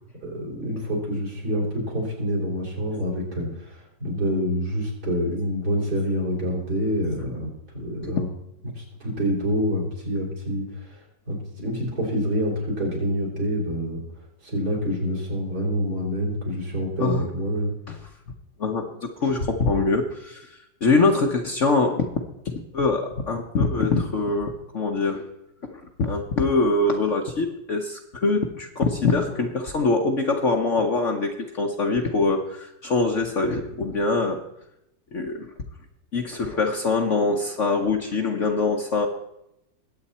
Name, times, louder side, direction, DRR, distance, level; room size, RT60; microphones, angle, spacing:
voice 1, 0.2-7.5 7.8-8.3 8.8-11.0 11.3-14.0 14.4-17.7, equal, 60° right, -3 dB, 4.7 m, -27 dB
voice 2, 18.6-22.1 22.4-25.2 25.7-34.4 35.1-35.5 36.1-39.1, left 3 dB, 50° left, 3 dB, 1.1 m, -24 dB
21.0 x 8.3 x 4.2 m, 0.83 s
omnidirectional pair, 2.0 m